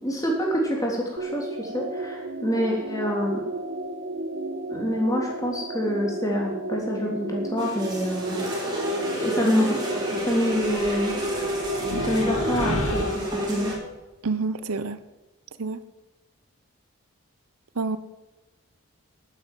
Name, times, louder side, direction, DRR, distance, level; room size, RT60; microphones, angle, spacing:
voice 1, 0.0-3.4 4.7-8.4 9.2-9.8 10.1-11.1 11.9-13.7, equal, 15° left, -1 dB, 3.4 m, -26 dB
sound 1, 1.2-13.0, right 2 dB, 55° right, 1.7 m, -33 dB
sound 2, 7.6-13.7, equal, 20° right, 4.3 m, -30 dB
sound 3, 10.6-13.9, left 1 dB, 75° left, 2.4 m, -33 dB
voice 2, 14.2-15.0 15.6-15.8 17.7-18.0, right 4 dB, 85° right, 13 dB, 0.9 m, -27 dB
11.5 x 9.9 x 7.6 m, 1.1 s
head